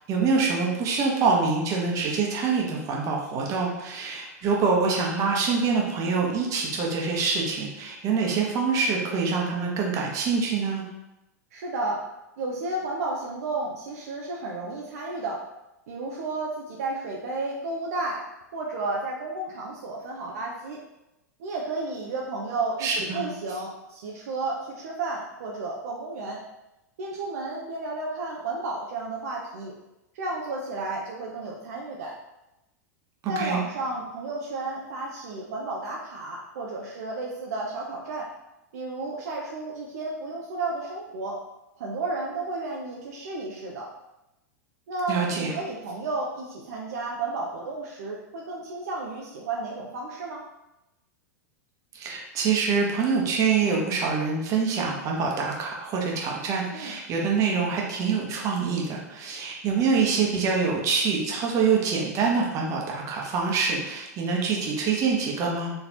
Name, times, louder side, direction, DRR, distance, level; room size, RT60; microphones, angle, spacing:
voice 1, 0.1-10.8 22.8-23.2 33.2-33.6 45.1-45.5 51.9-65.7, right 5 dB, 40° right, -1 dB, 1.1 m, -25 dB
voice 2, 11.5-12.0 12.4-15.4 15.9-18.2 18.5-20.8 21.4-26.4 27.0-29.7 30.1-32.1 33.3-38.3 38.7-41.4 41.8-43.9 44.9-50.5 56.7-56.9, right 3 dB, 65° right, -2 dB, 0.7 m, -32 dB
4.3 x 3.2 x 2.9 m, 0.94 s
hypercardioid pair, 95°, 9 cm